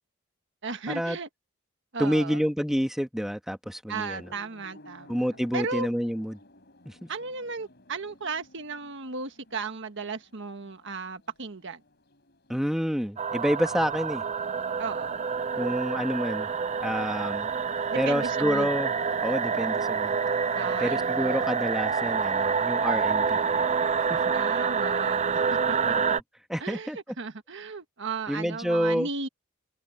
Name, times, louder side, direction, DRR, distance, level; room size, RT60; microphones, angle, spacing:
voice 1, 0.6-1.3 1.9-2.4 3.9-5.2 5.5-5.9 7.1-11.8 14.8-15.2 17.9-18.7 20.5-21.4 24.3-25.8 26.1-26.2 26.6-29.3, right 4 dB, 60° right, 1.5 m, -35 dB
voice 2, 2.0-4.3 5.1-6.4 6.8-7.1 12.5-14.2 15.6-16.5 16.8-17.5 17.9-18.9 19.2-20.1 20.8-23.4 24.1-24.2 25.8-26.1 26.5-27.0 28.3-29.1, equal, ahead, 1.5 m, -28 dB
sound 1, 4.1-20.0, left 1 dB, 55° left, 3.9 m, -58 dB
sound 2, 13.2-26.2, right 5 dB, 35° right, 0.5 m, -27 dB
head